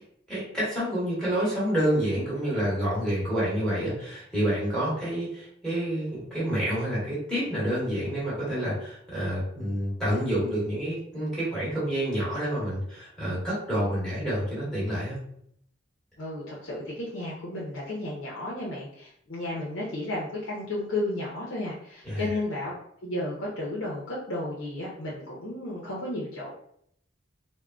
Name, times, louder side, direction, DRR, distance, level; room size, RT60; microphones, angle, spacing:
voice 1, 0.3-15.2 22.0-22.3, equal, 5° left, -9 dB, 1.2 m, -28 dB
voice 2, 16.2-22.7 23.0-26.5, left 1 dB, 85° left, -5 dB, 0.7 m, -33 dB
3.5 x 2.1 x 2.3 m, 0.69 s
head